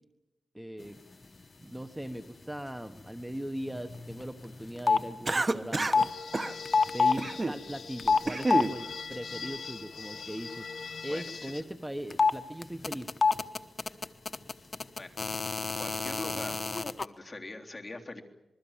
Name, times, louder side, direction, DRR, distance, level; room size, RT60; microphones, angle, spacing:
voice 1, 0.5-1.0 1.6-6.1 6.9-10.7 11.0-13.1, equal, 10° right, 8 dB, 1.3 m, -39 dB
sound 1, 3.8-4.3 4.5-5.1 5.9-6.1 6.7-7.2 8.0-8.7 12.1-12.3 12.6-17.0, left 4 dB, 40° left, 1.1 m, -26 dB
Cough, 5.2-6.0 6.3-6.5 7.2-7.6 8.0-8.7, right 2 dB, 35° right, 1.3 m, -29 dB
sound 2, 6.0-11.6, left 5 dB, 70° left, 1.5 m, -42 dB
voice 2, 11.1-11.5 15.0-15.1 15.8-16.6 17.0-18.2, left 2 dB, 20° left, 1 dB, 3.5 m, -42 dB
26.5 x 21.5 x 7.4 m, 0.97 s
wide cardioid pair, 85°, 0 cm